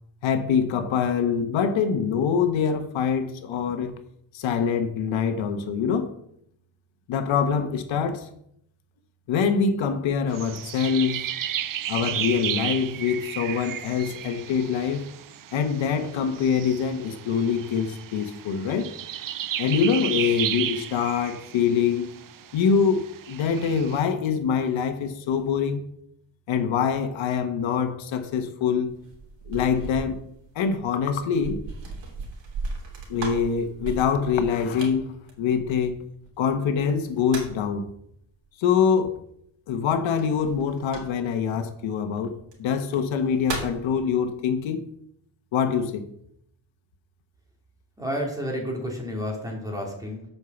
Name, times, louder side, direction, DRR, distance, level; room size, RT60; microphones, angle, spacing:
voice 1, 0.2-4.0 4.3-6.1 7.1-8.3 9.3-11.3 11.9-15.1 15.5-18.9 19.6-22.1 22.5-25.9 26.5-29.0 29.5-30.2 30.5-31.6 33.1-36.0 36.4-37.9 38.6-39.2 39.7-44.9 45.5-46.1, left 6 dB, 85° left, 1.1 m, -24 dB
sound 1, 10.3-24.0, right 11 dB, 45° right, 0.6 m, -34 dB
sound 2, 28.9-36.3 36.9-37.7 40.1-41.4 42.4-42.5 43.0-43.9, right 3 dB, 70° right, 3.1 m, -37 dB
voice 2, 48.0-50.2, equal, 10° right, 3.0 m, -30 dB
8.2 x 5.6 x 6.9 m
cardioid pair, 125°, 45 cm